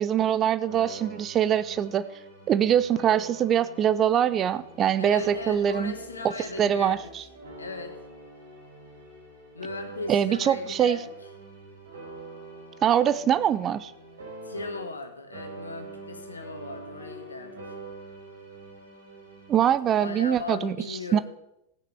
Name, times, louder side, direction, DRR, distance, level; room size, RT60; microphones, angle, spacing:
voice 1, 0.0-2.0 2.5-5.9 6.6-7.2 10.1-11.0 12.8-13.9 19.5-20.7 21.1-21.2, right 9 dB, 30° right, 15 dB, 0.5 m, -23 dB
sound 1, 0.6-15.1 15.3-19.8, right 2 dB, 65° right, 4.9 m, -45 dB
voice 2, 5.0-7.1 7.6-8.0 9.5-11.1 14.4-17.8 19.9-21.2, left 3 dB, 75° left, 7 dB, 1.5 m, -37 dB
16.0 x 9.4 x 3.4 m, 0.83 s
figure-of-eight pair, 90°, 0 cm